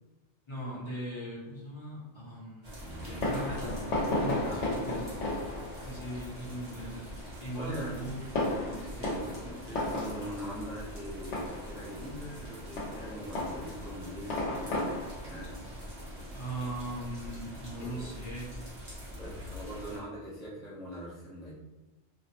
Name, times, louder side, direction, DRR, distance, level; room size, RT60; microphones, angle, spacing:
voice 1, 0.5-3.8 4.2-5.2 5.9-7.1 7.4-8.2 16.3-18.5, right 1 dB, 30° left, -7 dB, 0.7 m, -39 dB
sound 1, 2.6-20.0, equal, 35° right, 0.9 m, -44 dB
voice 2, 2.8-3.3 4.4-5.0 7.5-8.0 8.6-14.9 15.3-15.5 17.8-18.1 19.2-21.5, equal, ahead, -8 dB, 0.3 m, -42 dB
Fireworks, 3.0-17.1, left 1 dB, 80° left, 1.0 m, -36 dB
2.5 x 2.0 x 2.8 m, 1.0 s
omnidirectional pair, 1.2 m